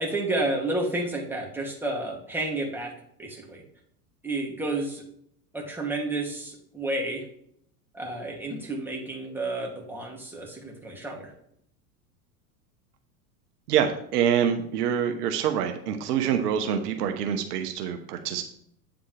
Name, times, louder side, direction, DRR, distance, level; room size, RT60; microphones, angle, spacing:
voice 1, 0.0-2.9 3.2-3.6 4.2-5.0 5.5-7.2 7.9-11.3, right 2 dB, 5° right, -2 dB, 2.6 m, -31 dB
voice 2, 13.7-18.4, right 8 dB, 75° right, 6 dB, 1.2 m, -26 dB
8.9 x 7.5 x 3.4 m, 0.70 s
hypercardioid pair, 110°, 48 cm